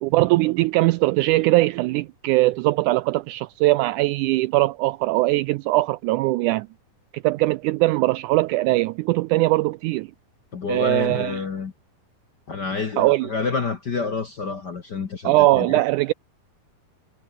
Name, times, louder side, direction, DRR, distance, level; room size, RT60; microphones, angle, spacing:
voice 1, 0.0-6.7 7.1-10.1 10.7-11.4 13.0-13.3 15.2-16.1, right 19 dB, 85° right, 1.8 m, -21 dB
voice 2, 10.5-11.7 12.5-15.8, left 5 dB, 45° left, 1.5 m, -28 dB
omnidirectional pair, 3.9 m